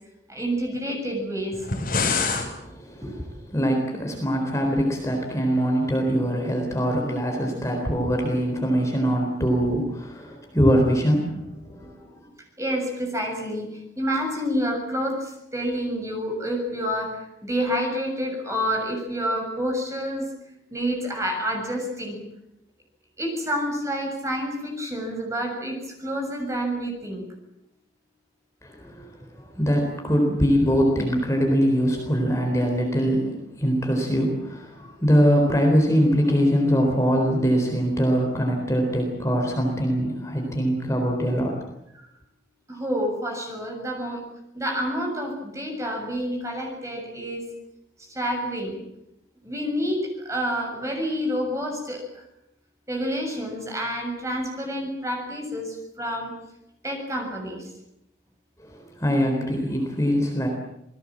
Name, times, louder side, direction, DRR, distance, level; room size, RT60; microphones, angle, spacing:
voice 1, 0.3-1.6 3.0-3.2 12.6-20.3 20.7-22.2 23.2-27.2 42.7-44.2 44.5-47.5 48.0-48.8 49.4-52.2 52.9-56.3 56.8-57.7, equal, 15° right, 2 dB, 7.1 m, -28 dB
sound 1, 1.5-2.5, left 4 dB, 50° left, 6.9 m, -25 dB
voice 2, 2.6-3.0 3.5-12.2 28.6-29.1 29.4-41.6 58.6-60.5, equal, 15° left, 1 dB, 4.1 m, -23 dB
28.0 x 20.0 x 7.6 m, 0.83 s
head